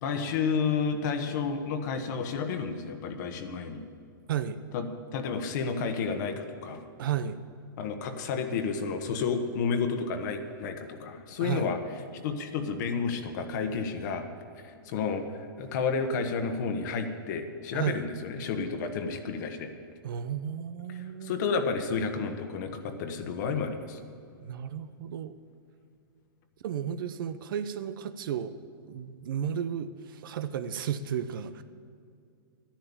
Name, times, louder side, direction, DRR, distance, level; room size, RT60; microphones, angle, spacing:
voice 1, 0.0-3.8 4.7-4.9 5.1-6.8 7.8-11.8 12.2-14.3 14.6-15.2 15.6-19.7 21.2-24.0, left 5 dB, 55° left, 6 dB, 1.4 m, -31 dB
voice 2, 7.0-7.4 11.4-11.7 17.7-18.1 20.0-21.4 24.4-25.4 26.6-28.5 28.9-31.6, right 8 dB, 70° right, 11 dB, 0.7 m, -33 dB
12.0 x 10.5 x 7.1 m, 2.4 s
hypercardioid pair, 145°, 12 cm